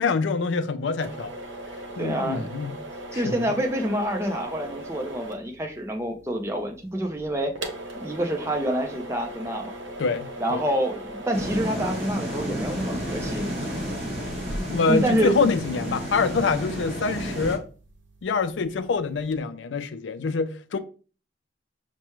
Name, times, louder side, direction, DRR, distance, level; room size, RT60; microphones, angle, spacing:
voice 1, 0.0-1.3 2.0-2.8 3.1-3.4 10.0-10.6 14.7-17.6 18.2-20.8, left 4 dB, 80° left, 0.4 m, -25 dB
sound 1, 1.0-19.4, right 1 dB, 80° right, 0.8 m, -41 dB
voice 2, 2.0-2.5 3.1-7.5 7.9-9.7 10.4-13.5 14.9-15.4, equal, 15° right, 0.6 m, -27 dB
sound 2, 11.3-17.6, equal, 35° right, 1.6 m, -31 dB
6.0 x 2.2 x 3.0 m
head